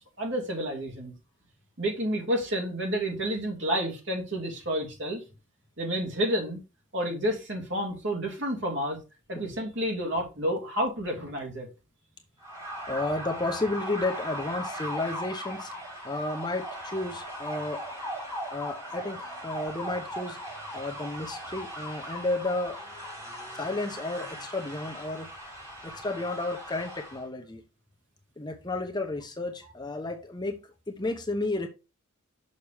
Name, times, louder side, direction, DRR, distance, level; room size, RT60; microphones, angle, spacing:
voice 1, 0.2-1.1 1.8-5.2 5.8-6.6 6.9-9.0 9.3-11.7, equal, 55° right, 2.5 m, -30 dB
sound 1, 12.4-27.2, equal, 15° right, 4.6 m, -39 dB
voice 2, 12.9-15.7 16.0-17.8 18.5-20.4 20.7-22.8 23.5-25.3 25.8-27.6 28.4-31.7, left 2 dB, 20° left, 0.9 m, -32 dB
6.5 x 5.9 x 3.5 m
head